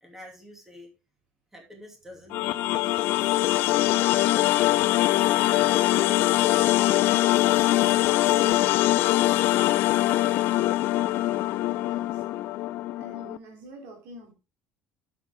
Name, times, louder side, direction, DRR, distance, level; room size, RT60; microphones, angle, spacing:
voice 1, 0.0-0.9 1.5-3.4 4.1-4.9 5.2-7.3 7.7-10.0, left 1 dB, 10° right, 2.6 m, -47 dB
sound 1, 2.3-13.4, left 16 dB, 65° left, 0.5 m, -23 dB
voice 2, 11.6-12.2 13.0-14.3, equal, 75° right, 3.3 m, -46 dB
8.0 x 7.5 x 3.6 m
cardioid pair, 135°, 4 cm